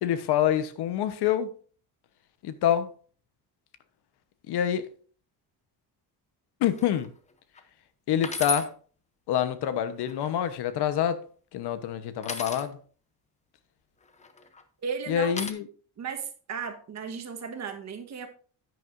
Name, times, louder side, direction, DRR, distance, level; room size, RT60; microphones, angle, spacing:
voice 1, 0.0-1.5 2.4-2.9 4.5-4.9 6.6-7.1 8.1-8.7 9.3-11.2 11.5-12.8 15.1-15.7, left 10 dB, 75° left, 1.1 m, -26 dB
sound 1, 6.8-7.1 7.6-7.7 8.2-8.7 9.9-10.5 12.2-12.7 14.1-14.6 15.4-15.5, left 3 dB, 15° left, 0.7 m, -34 dB
voice 2, 14.8-15.3 16.0-18.3, right 6 dB, 40° right, 1.4 m, -35 dB
10.5 x 9.5 x 2.6 m
cardioid pair, 175°, 40 cm